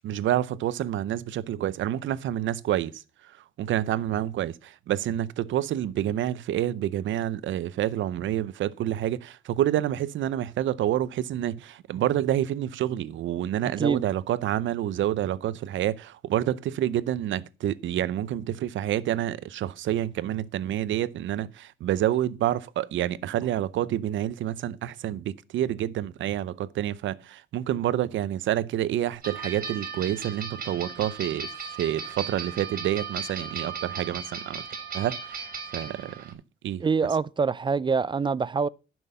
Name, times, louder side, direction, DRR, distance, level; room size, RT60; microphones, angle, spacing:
voice 1, 0.0-2.9 3.6-31.5 31.8-34.6 34.9-35.4 35.7-36.8, right 12 dB, 75° right, 0.7 m, -28 dB
voice 2, 13.6-14.0 36.8-38.7, right 5 dB, 25° right, 0.4 m, -25 dB
sound 1, 29.2-36.3, right 5 dB, 45° right, 2.5 m, -37 dB
11.0 x 6.2 x 5.4 m
cardioid pair, 90°, 20 cm